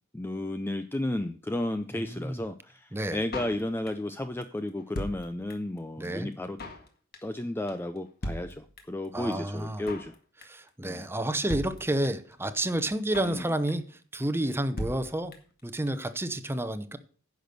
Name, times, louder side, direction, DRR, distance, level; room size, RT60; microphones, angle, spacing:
voice 1, 0.1-6.6 7.2-10.1 10.8-11.1 13.2-13.5, left 1 dB, 10° left, 0.4 m, -33 dB
voice 2, 2.1-2.4 2.9-3.2 6.0-6.3 9.1-9.9 10.5-15.3 15.6-17.0, right 1 dB, 10° right, 0.7 m, -30 dB
Drum kit, 3.3-4.1 4.4-4.5 4.7-5.8 6.0-6.1 6.3-6.9 7.1-7.4 7.7-7.8 8.0-8.1 8.2-9.1 9.3-9.4 9.6-10.2 10.4-10.7 11.0-11.1 11.2-11.3 11.5-12.3 12.6-12.7 12.9-13.4 13.7-14.0 14.2-14.3 14.5-14.6 14.8-15.6 15.9-16.0 16.1-16.2, left 1 dB, 45° left, 1.7 m, -37 dB
10.5 x 6.1 x 6.6 m
head